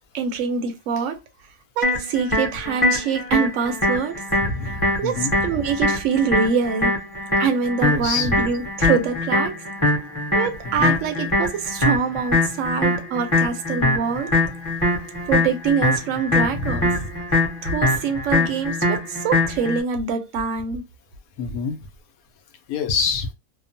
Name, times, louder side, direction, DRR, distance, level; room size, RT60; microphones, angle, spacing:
voice 1, 0.1-1.2 1.8-4.2 4.6-7.0 7.4-9.6 10.3-14.3 15.3-16.9 17.6-20.8, right 6 dB, 70° right, 0.9 m, -24 dB
sound 1, 1.8-19.8, left 2 dB, 25° left, 1.1 m, -23 dB
voice 2, 4.4-5.6 7.8-8.5 10.6-11.0 16.4-17.1 21.4-21.8 22.7-23.3, left 4 dB, 85° left, 1.0 m, -27 dB
2.8 x 2.0 x 2.5 m
omnidirectional pair, 1.5 m